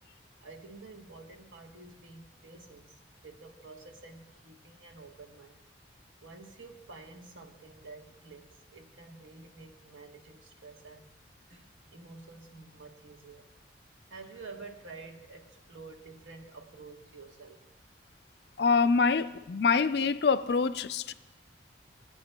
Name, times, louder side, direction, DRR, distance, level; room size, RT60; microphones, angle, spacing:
voice 1, 0.4-3.0 3.2-5.6 6.2-11.1 11.5-13.5 14.1-17.6, right 3 dB, 90° right, 3 dB, 1.2 m, -49 dB
voice 2, 18.6-21.1, left 5 dB, 55° left, 13 dB, 0.4 m, -25 dB
23.0 x 9.4 x 2.2 m, 1.0 s
head